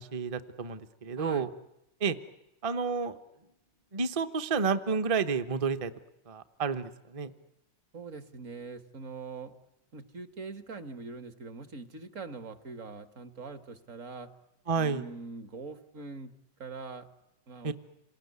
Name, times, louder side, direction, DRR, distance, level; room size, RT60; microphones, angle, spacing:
voice 1, 0.0-1.5 2.0-2.2 2.6-3.2 3.9-5.9 6.3-7.3 14.7-15.1 17.6-17.7, right 5 dB, 25° right, 11 dB, 0.7 m, -30 dB
voice 2, 1.2-1.5 7.9-9.6 9.9-14.3 14.8-16.3 16.6-17.1 17.5-17.7, right 4 dB, 45° right, 11 dB, 1.5 m, -43 dB
28.0 x 19.0 x 9.6 m, 0.90 s
omnidirectional pair, 2.0 m